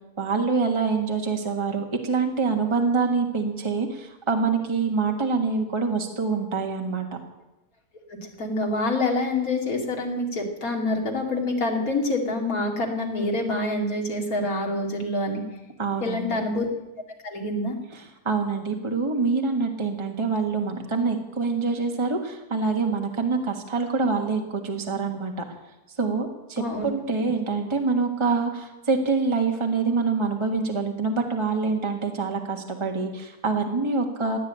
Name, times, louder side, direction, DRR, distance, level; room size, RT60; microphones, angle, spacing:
voice 1, 0.2-7.0 15.8-16.4 17.9-25.3 26.0-34.4, right 4 dB, 20° right, 3 dB, 1.6 m, -25 dB
voice 2, 8.4-15.4 16.0-16.7 17.2-17.7 26.6-26.9, left 2 dB, 70° left, 1 dB, 3.0 m, -26 dB
16.5 x 9.8 x 8.8 m, 0.99 s
omnidirectional pair, 1.5 m